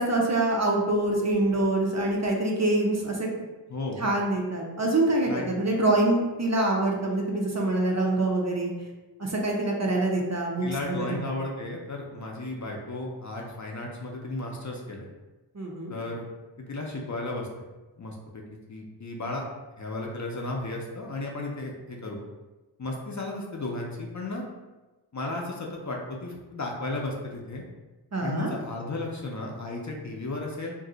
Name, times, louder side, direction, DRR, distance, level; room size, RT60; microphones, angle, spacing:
voice 1, 0.0-3.3 4.0-8.7 9.2-11.1 15.5-15.9 28.1-28.5, right 2 dB, 35° right, -1 dB, 0.5 m, -25 dB
voice 2, 3.7-4.0 5.3-5.5 10.6-15.1 15.9-16.3 16.6-17.5 18.0-18.4 18.7-19.4 19.8-22.2 22.8-24.4 25.1-27.6 28.2-30.7, left 2 dB, 40° left, -1 dB, 0.5 m, -34 dB
2.6 x 2.1 x 3.7 m, 1.2 s
wide cardioid pair, 55°, 45 cm